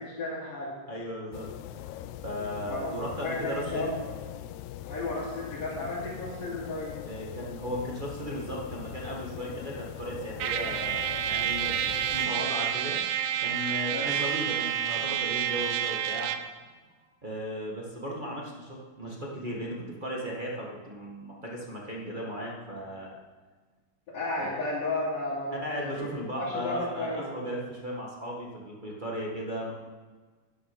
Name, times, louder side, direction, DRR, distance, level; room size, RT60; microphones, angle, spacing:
voice 1, 0.0-0.7 2.7-4.0 4.8-7.0 13.9-14.2 24.1-27.3, left 2 dB, 65° left, -10 dB, 4.0 m, -33 dB
voice 2, 0.9-1.5 2.2-3.9 7.0-11.8 12.1-13.0 13.4-16.3 17.2-23.2 24.4-24.6 25.6-29.7, equal, 25° right, -3 dB, 1.2 m, -36 dB
sound 1, 1.3-12.3, left 12 dB, 80° left, 1.9 m, -41 dB
Trumpet, 10.4-16.5, right 10 dB, 80° right, 2.0 m, -29 dB
10.5 x 9.8 x 6.0 m, 1.4 s
omnidirectional pair, 3.4 m